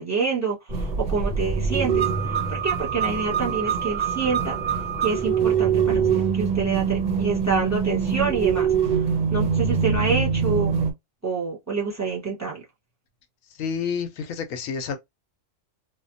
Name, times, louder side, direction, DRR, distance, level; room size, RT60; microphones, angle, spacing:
voice 1, 0.0-4.5 5.0-8.7 8.9-9.0 9.3-10.7 11.2-12.6, right 5 dB, 15° right, 0.8 m, -27 dB
sound 1, 0.7-10.9, right 6 dB, 50° right, 0.6 m, -24 dB
voice 2, 13.6-15.0, left 6 dB, 80° left, 1.0 m, -29 dB
2.7 x 2.1 x 2.5 m
omnidirectional pair, 1.4 m